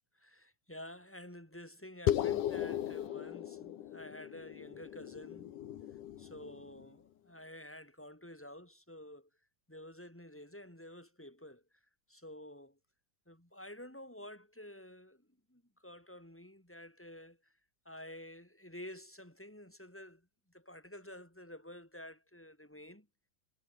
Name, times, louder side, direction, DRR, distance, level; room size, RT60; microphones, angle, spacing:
voice 1, 0.1-5.5 6.2-9.3 9.7-11.6 12.1-12.8 13.3-17.5 17.8-23.1, left 1 dB, 5° left, 5.5 m, -50 dB
sound 1, 2.1-6.9, left 12 dB, 75° left, 2.9 m, -37 dB
omnidirectional pair, 3.8 m